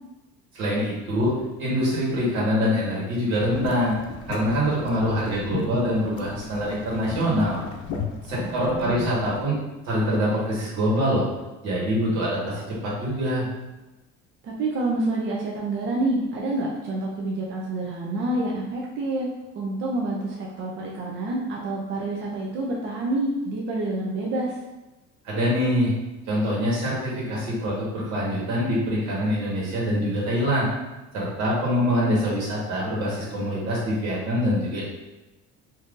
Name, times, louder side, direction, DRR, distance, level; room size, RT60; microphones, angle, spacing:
voice 1, 0.5-1.3 1.6-3.9 4.3-7.6 8.3-9.5 9.8-11.2 11.6-13.5 25.2-25.9 26.3-30.7 31.1-34.8, equal, 75° right, -5 dB, 1.4 m, -24 dB
sound 1, 3.4-9.4, left 5 dB, 75° left, 0.6 m, -35 dB
voice 2, 8.4-9.1 14.4-19.3 19.5-24.5, right 2 dB, 40° right, -3 dB, 0.5 m, -28 dB
2.7 x 2.5 x 3.6 m, 1.1 s
cardioid pair, 145°, 29 cm